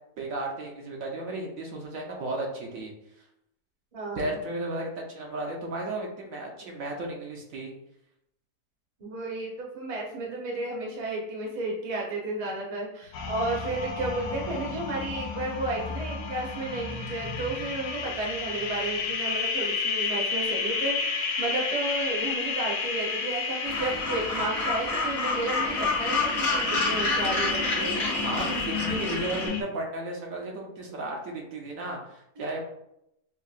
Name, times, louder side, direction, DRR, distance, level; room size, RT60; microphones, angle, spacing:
voice 1, 0.2-2.9 4.2-7.7 28.2-32.6, right 2 dB, 70° right, 0 dB, 1.1 m, -34 dB
voice 2, 3.9-4.4 9.0-28.0 32.4-32.5, right 2 dB, 35° right, -2 dB, 0.6 m, -32 dB
sound 1, 13.1-29.6, left 5 dB, 70° left, 0.9 m, -31 dB
Gull seagull, 23.6-29.5, left 2 dB, 35° left, 0.7 m, -29 dB
5.4 x 2.0 x 2.4 m, 0.79 s
omnidirectional pair, 1.6 m